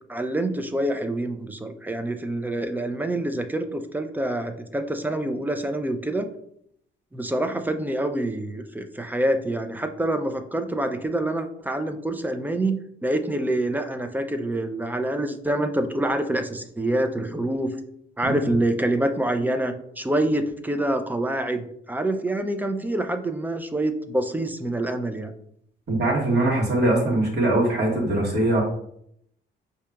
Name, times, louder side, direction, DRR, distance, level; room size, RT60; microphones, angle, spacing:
voice 1, 0.1-6.3 7.1-17.7 18.2-25.3, right 1 dB, 10° right, 7 dB, 0.4 m, -26 dB
voice 2, 25.9-28.6, right 1 dB, 55° right, -2 dB, 1.4 m, -22 dB
4.9 x 2.8 x 2.3 m, 0.70 s
cardioid pair, 90°, 20 cm